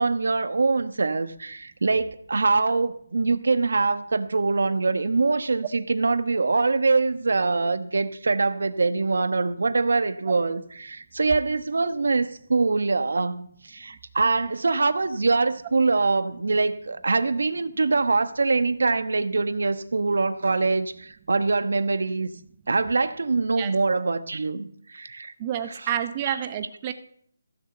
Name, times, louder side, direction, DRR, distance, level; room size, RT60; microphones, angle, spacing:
voice 1, 0.0-22.3 22.7-25.3 26.2-26.4, right 3 dB, 70° right, 11 dB, 1.2 m, -24 dB
voice 2, 25.4-26.9, right 10 dB, 20° right, 11 dB, 0.8 m, -29 dB
16.0 x 6.6 x 7.9 m, 0.65 s
hypercardioid pair, 170°, 0 cm